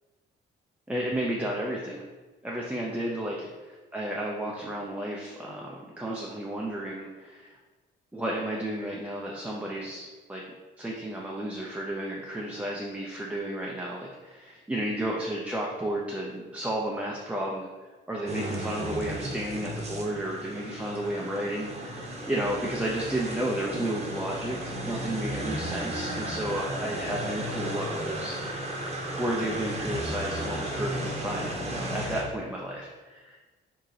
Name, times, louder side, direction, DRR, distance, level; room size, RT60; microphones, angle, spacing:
voice 1, 0.9-2.0 2.4-7.5 8.1-10.4 10.8-17.7 18.1-28.4 29.2-33.4, right 1 dB, 5° right, -3 dB, 0.5 m, -32 dB
sound 1, 18.3-32.2, right 1 dB, 30° right, 0.9 m, -34 dB
4.7 x 2.8 x 3.2 m, 1.3 s
cardioid pair, 90°, 20 cm